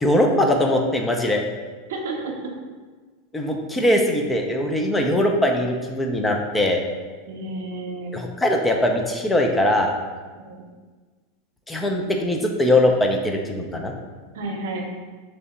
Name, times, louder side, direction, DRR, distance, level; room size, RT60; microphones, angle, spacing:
voice 1, 0.0-1.4 3.3-6.8 8.1-9.9 11.7-13.9, left 1 dB, 10° left, 2 dB, 0.4 m, -21 dB
voice 2, 1.9-2.3 7.3-8.1 10.3-10.7 14.3-14.9, right 2 dB, 80° right, 1 dB, 0.7 m, -31 dB
3.2 x 2.8 x 4.1 m, 1.4 s
supercardioid pair, 125°, 0 cm